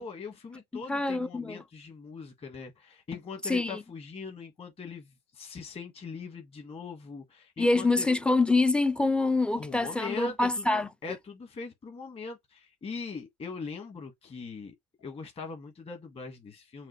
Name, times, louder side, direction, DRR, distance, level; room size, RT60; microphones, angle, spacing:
voice 1, 0.0-8.1 9.5-16.9, left 4 dB, 30° left, 1.5 m, -41 dB
voice 2, 0.7-1.6 3.5-3.8 7.6-10.9, left 3 dB, 5° left, 0.4 m, -26 dB
5.8 x 2.4 x 3.1 m
supercardioid pair, 110°, 19 cm